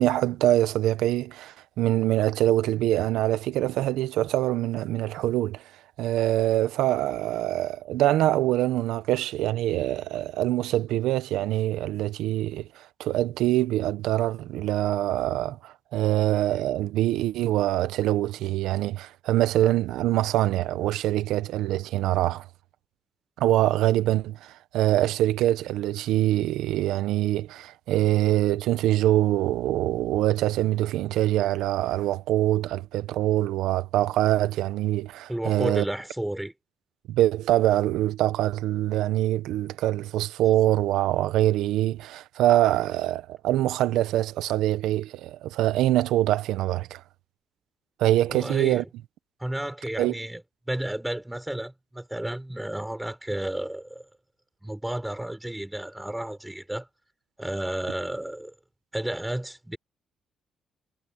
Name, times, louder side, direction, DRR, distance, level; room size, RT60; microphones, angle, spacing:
voice 1, 0.0-5.6 6.0-22.5 23.4-35.8 37.1-47.0 48.0-48.8 50.0-50.1, right 14 dB, 90° right, 0.9 m, -24 dB
voice 2, 35.3-36.5 48.3-48.9 49.4-50.4 50.7-54.0 54.6-56.9 57.4-58.5 58.9-59.8, right 1 dB, 5° right, 6.7 m, -32 dB
cardioid pair, 90°, 0 cm